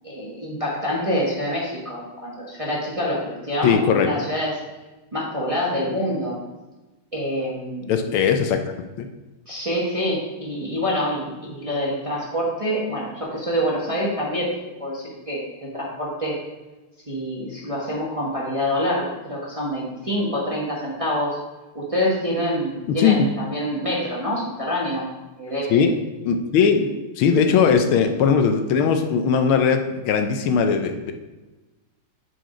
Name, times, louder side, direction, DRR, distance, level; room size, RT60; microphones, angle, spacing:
voice 1, 0.0-4.6 5.1-6.4 7.1-7.8 9.5-14.5 14.8-16.4 17.1-21.4 21.7-25.1 25.4-25.8 26.8-26.9, equal, 20° right, -5 dB, 1.0 m, -26 dB
voice 2, 3.6-4.1 7.9-8.6 9.0-9.1 22.9-23.3 25.7-25.9 26.2-26.9 27.2-31.1, left 6 dB, 80° left, 6 dB, 1.5 m, -19 dB
6.4 x 4.7 x 5.0 m, 1.1 s
omnidirectional pair, 2.3 m